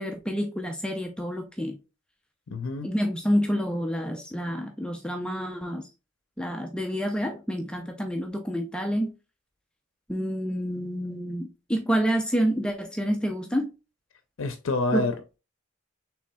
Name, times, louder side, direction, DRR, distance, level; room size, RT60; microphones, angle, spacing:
voice 1, 0.0-1.8 2.8-5.9 6.4-9.1 10.1-13.7 14.9-15.1, equal, 5° left, 0.5 m, -28 dB
voice 2, 2.5-2.9 14.4-15.4, left 2 dB, 85° left, 0.6 m, -28 dB
5.8 x 3.4 x 2.2 m
head